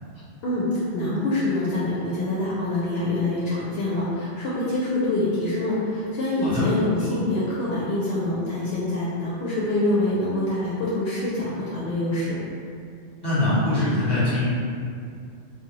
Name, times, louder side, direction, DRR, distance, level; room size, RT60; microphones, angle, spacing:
voice 1, 0.4-12.4, left 2 dB, 70° left, -8 dB, 0.7 m, -25 dB
voice 2, 13.2-14.4, left 1 dB, 25° left, -11 dB, 1.0 m, -22 dB
2.7 x 2.2 x 2.9 m, 2.3 s
omnidirectional pair, 1.1 m